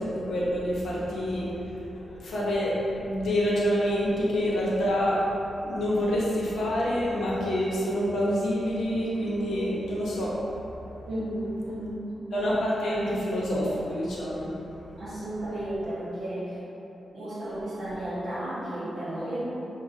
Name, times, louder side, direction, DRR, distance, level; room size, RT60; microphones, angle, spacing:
voice 1, 0.0-1.5 1.9-2.7 3.0-5.2 5.6-10.3 12.3-14.5, equal, 80° left, -6 dB, 0.9 m, -27 dB
voice 2, 11.1-12.1 15.0-16.6 17.1-19.4, right 1 dB, 65° right, -9 dB, 1.3 m, -33 dB
6.3 x 2.3 x 2.5 m, 3.0 s
wide cardioid pair, 135°, 0 cm